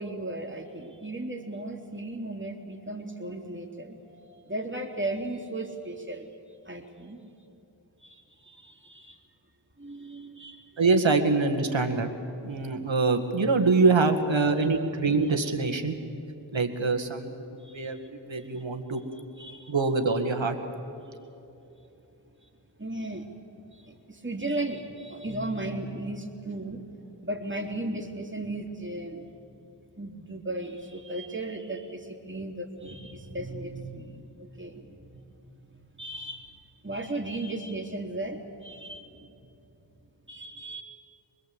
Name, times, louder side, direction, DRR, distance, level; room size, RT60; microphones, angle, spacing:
voice 1, 0.0-6.3 6.6-7.2 8.0-9.2 9.8-10.8 17.6-18.0 18.4-18.6 19.4-19.7 21.0-21.1 22.8-23.3 23.7-29.2 30.0-35.2 36.0-36.5 36.8-39.3 40.3-40.8, right 2 dB, 25° right, 2 dB, 3.3 m, -36 dB
voice 2, 10.8-12.1 12.4-15.9 16.5-19.0 19.7-20.6, right 3 dB, 80° right, 6 dB, 2.0 m, -25 dB
25.5 x 21.0 x 8.3 m, 2.9 s
wide cardioid pair, 45°, 45 cm